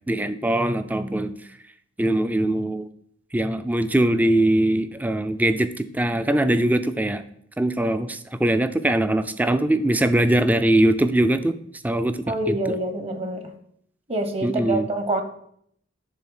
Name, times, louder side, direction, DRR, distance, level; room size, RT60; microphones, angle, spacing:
voice 1, 0.1-1.3 2.0-2.9 3.3-7.2 7.6-11.6 11.8-12.6 14.4-14.9, right 1 dB, 10° right, 11 dB, 0.4 m, -21 dB
voice 2, 12.3-13.5 14.1-15.2, right 2 dB, 30° right, 7 dB, 1.0 m, -26 dB
10.5 x 3.7 x 6.4 m, 0.68 s
head